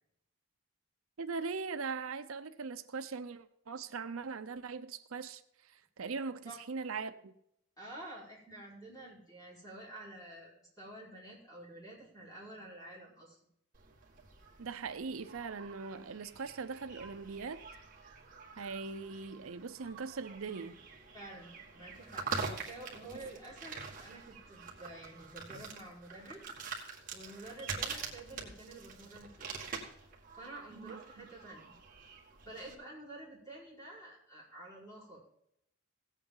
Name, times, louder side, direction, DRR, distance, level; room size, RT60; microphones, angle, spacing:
voice 1, 1.2-7.3 14.6-17.6 18.6-20.8 30.8-31.0, right 4 dB, 75° right, 0.6 m, -40 dB
voice 2, 7.8-13.4 21.1-26.4 27.1-29.5 30.3-31.8 32.4-35.3, right 1 dB, 15° left, 5.2 m, -49 dB
sound 1, 13.7-32.7, right 5 dB, 40° right, 1.8 m, -45 dB
17.0 x 8.3 x 3.8 m
head